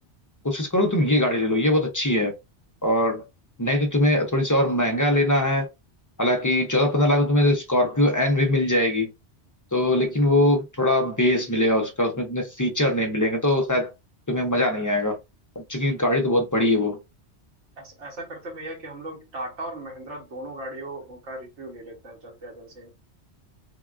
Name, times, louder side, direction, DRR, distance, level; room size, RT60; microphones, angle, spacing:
voice 1, 0.4-2.3 2.8-3.2 3.6-5.7 6.2-9.1 9.7-13.9 14.3-15.2 15.7-17.0, left 1 dB, 25° left, 0.5 m, -22 dB
voice 2, 17.8-22.9, right 1 dB, 85° right, 1.4 m, -37 dB
3.6 x 2.2 x 2.4 m
omnidirectional pair, 1.2 m